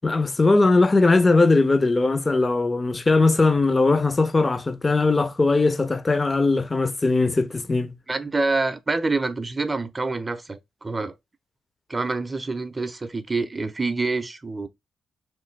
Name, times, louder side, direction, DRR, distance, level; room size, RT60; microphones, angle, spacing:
voice 1, 0.0-7.9, left 3 dB, 30° left, 0.4 m, -20 dB
voice 2, 8.1-11.1 11.9-14.7, right 3 dB, 30° right, 0.5 m, -26 dB
3.0 x 2.2 x 3.1 m
supercardioid pair, 55°, 0 cm